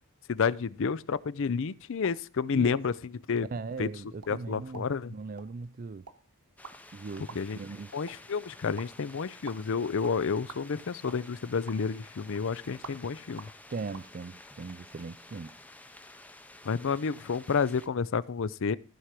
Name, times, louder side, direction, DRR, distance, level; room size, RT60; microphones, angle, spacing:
voice 1, 0.3-2.9 3.3-3.5 3.8-3.9 4.3-5.1 7.3-7.6 7.9-13.5 16.6-18.8, left 5 dB, 60° left, 0.5 m, -30 dB
sound 1, 1.9-14.1, right 5 dB, 80° right, 1.2 m, -52 dB
voice 2, 3.5-6.1 6.9-7.9 13.7-15.6, right 4 dB, 40° right, 0.4 m, -39 dB
sound 2, 6.6-17.9, left 2 dB, 5° left, 0.6 m, -52 dB
14.5 x 4.8 x 5.9 m
head